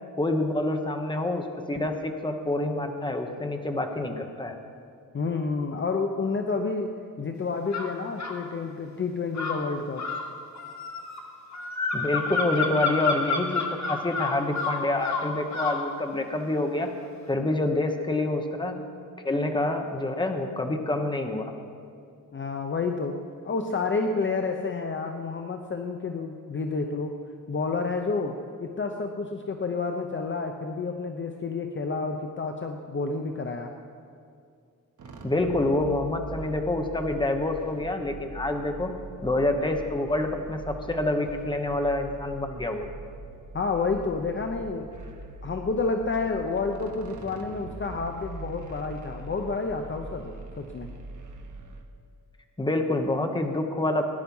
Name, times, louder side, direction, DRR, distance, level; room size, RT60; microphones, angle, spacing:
voice 1, 0.2-4.6 11.9-16.9 17.3-18.7 19.2-21.5 35.2-38.9 39.2-42.9 52.6-54.0, left 2 dB, 15° left, 4 dB, 1.1 m, -27 dB
voice 2, 5.1-6.9 7.2-10.0 22.3-23.2 23.4-27.1 27.5-28.3 28.6-33.7 43.5-44.9 45.4-50.9, left 4 dB, 35° left, 4 dB, 0.7 m, -29 dB
sound 1, 7.7-8.4 9.3-15.9, left 4 dB, 55° left, 1.6 m, -29 dB
sound 2, 35.0-51.8, right 3 dB, 60° right, 1.4 m, -42 dB
17.5 x 10.5 x 5.5 m, 2.3 s
wide cardioid pair, 145°, 33 cm